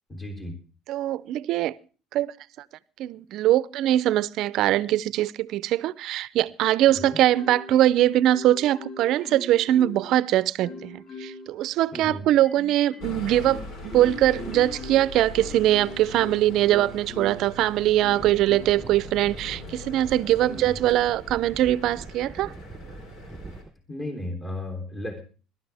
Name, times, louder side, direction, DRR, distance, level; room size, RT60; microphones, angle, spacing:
voice 1, 0.1-0.6 6.9-7.2 11.9-12.3 20.4-20.8 23.9-25.2, left 1 dB, 20° left, 3.5 m, -35 dB
voice 2, 0.9-1.7 2.1-2.3 3.0-22.5, right 13 dB, 60° right, 0.6 m, -22 dB
Marimba xylophone, 6.9-7.9 8.3-10.1 10.6-11.5 12.0-17.5 18.0-18.9 19.4-19.7, left 2 dB, 40° left, 6.8 m, -41 dB
sound 1, 13.0-23.6, left 1 dB, 60° left, 4.2 m, -41 dB
sound 2, 18.2-23.7, right 4 dB, 15° right, 0.8 m, -43 dB
21.0 x 12.0 x 3.5 m
cardioid pair, 115°, 0 cm